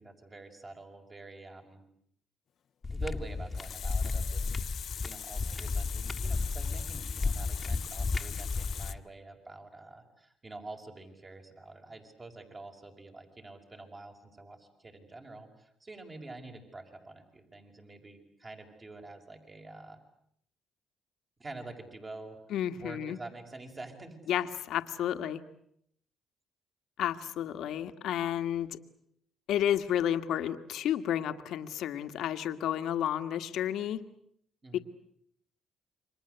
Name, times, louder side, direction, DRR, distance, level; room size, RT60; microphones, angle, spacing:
voice 1, 0.0-1.8 2.9-20.0 21.4-22.4 22.7-24.2 34.6-34.8, right 2 dB, 30° right, 4 dB, 5.7 m, -47 dB
sound 1, 2.8-9.0, left 3 dB, 25° left, 1.8 m, -33 dB
Water tap faucet, 3.3-8.9, left 9 dB, 60° left, 1.1 m, -42 dB
voice 2, 22.5-23.2 24.3-25.4 27.0-28.8 29.5-34.0 34.7-34.8, left 10 dB, 75° left, 8 dB, 1.7 m, -31 dB
29.0 x 24.5 x 8.0 m, 0.71 s
cardioid pair, 85°, 0 cm